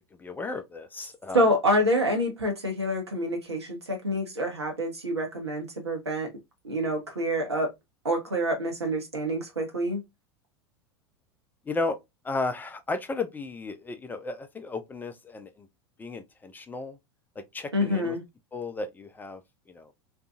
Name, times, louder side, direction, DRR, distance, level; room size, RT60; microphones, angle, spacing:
voice 1, 0.2-1.4 11.7-12.0 12.2-15.7 16.0-17.0 17.5-18.2 18.5-19.4 19.7-19.9, left 3 dB, 15° left, 0.4 m, -34 dB
voice 2, 1.3-6.3 6.6-7.7 8.0-10.0 17.7-18.2, equal, 80° right, 1.0 m, -27 dB
2.6 x 2.4 x 2.3 m
figure-of-eight pair, 85°, 14 cm